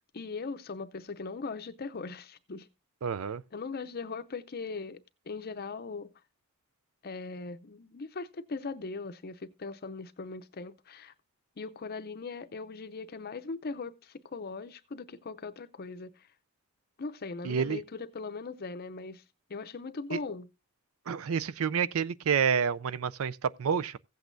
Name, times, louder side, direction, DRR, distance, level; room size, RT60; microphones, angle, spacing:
voice 1, 0.1-2.7 3.5-6.1 7.0-11.1 11.6-16.1 17.0-19.2 19.5-20.5, left 4 dB, 45° left, 0.6 m, -39 dB
voice 2, 3.0-3.4 17.4-17.8 20.1-20.2 21.1-24.0, right 7 dB, 65° right, 0.4 m, -29 dB
16.0 x 8.2 x 2.6 m
head